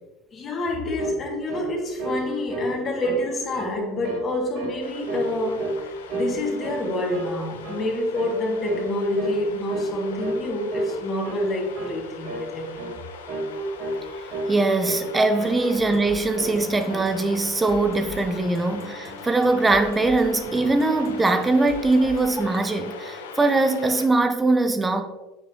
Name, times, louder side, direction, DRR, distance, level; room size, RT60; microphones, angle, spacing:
voice 1, 0.3-12.8, left 1 dB, 40° left, 0 dB, 2.1 m, -27 dB
sound 1, 1.0-1.2 1.5-1.7 2.0-3.2 3.5-3.8 4.0-4.3 4.5-4.8 5.1-5.8 6.1-6.9 7.1-7.3 7.6-7.8 8.1-8.4 8.7-8.9 9.2-9.4 9.7-9.9 10.2-10.4 10.7-10.9 11.2-11.4 11.7-12.0 12.2-12.5 12.7-13.0 13.3-14.0 14.3-15.0 15.3-16.1 16.3-17.1, right 2 dB, 70° right, 2.2 m, -31 dB
sound 2, 4.8-24.1, left 6 dB, 85° left, 0.5 m, -41 dB
voice 2, 14.5-25.0, right 2 dB, 20° right, 7 dB, 0.8 m, -21 dB
sound 3, 15.8-22.6, equal, 40° right, 1.4 m, -44 dB
7.5 x 5.2 x 2.9 m, 1.1 s
hypercardioid pair, 80°, 0 cm